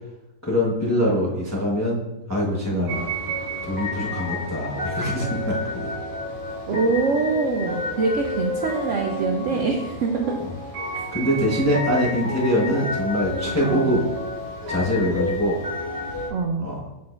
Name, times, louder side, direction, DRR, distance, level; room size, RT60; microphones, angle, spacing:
voice 1, 0.4-3.1 3.6-5.9 11.1-14.0 14.7-15.6 16.6-16.8, equal, 15° left, -4 dB, 0.6 m, -23 dB
voice 2, 2.7-3.1 6.7-10.4 13.6-14.1 16.3-16.7, right 4 dB, 85° right, 3 dB, 0.6 m, -24 dB
sound 1, 2.9-16.3, left 1 dB, 20° right, 1.4 m, -30 dB
7.3 x 6.1 x 2.4 m, 0.98 s
omnidirectional pair, 2.0 m